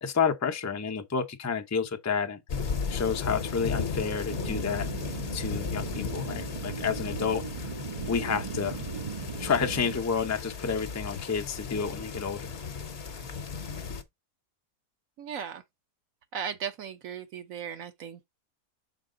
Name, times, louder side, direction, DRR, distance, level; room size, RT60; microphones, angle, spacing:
voice 1, 0.0-2.4 2.9-4.9 5.3-7.7 8.1-8.8 9.4-12.6, left 6 dB, 20° left, 0.4 m, -30 dB
sound 1, 2.5-14.0, left 5 dB, 50° left, 1.0 m, -36 dB
sound 2, 4.3-10.0, right 5 dB, 45° right, 0.5 m, -37 dB
voice 2, 15.2-15.6 16.3-18.3, right 7 dB, 65° right, 1.1 m, -37 dB
5.9 x 4.7 x 3.7 m
omnidirectional pair, 1.6 m